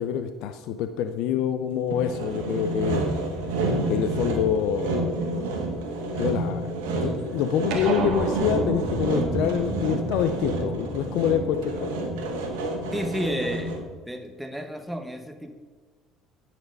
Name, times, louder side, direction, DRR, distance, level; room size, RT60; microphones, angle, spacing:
voice 1, 0.0-3.1 3.9-5.1 6.1-6.7 7.0-12.0, left 9 dB, 75° left, 9 dB, 0.5 m, -26 dB
Sawing, 1.9-14.0, right 2 dB, 90° right, 1.4 m, -29 dB
sound 1, 7.7-12.4, right 3 dB, 75° right, 1.4 m, -31 dB
voice 2, 12.9-13.7 14.1-15.5, equal, ahead, 4 dB, 1.0 m, -31 dB
9.8 x 4.3 x 5.3 m, 1.5 s
supercardioid pair, 80°, 0 cm